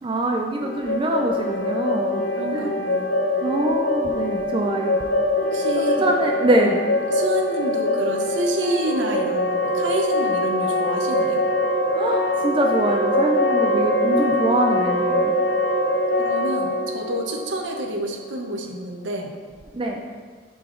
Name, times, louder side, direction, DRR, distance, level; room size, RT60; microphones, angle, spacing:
voice 1, 0.0-2.2 2.5-2.7 3.4-5.0 6.0-6.8 11.9-15.3 19.7-20.0, right 1 dB, 25° right, 2 dB, 0.4 m, -23 dB
sound 1, 0.6-18.4, left 1 dB, 75° left, 0.8 m, -23 dB
voice 2, 2.3-3.2 5.4-6.1 7.1-11.4 16.2-19.4, right 1 dB, 70° right, 3 dB, 0.7 m, -28 dB
7.5 x 4.0 x 3.7 m, 1.6 s
head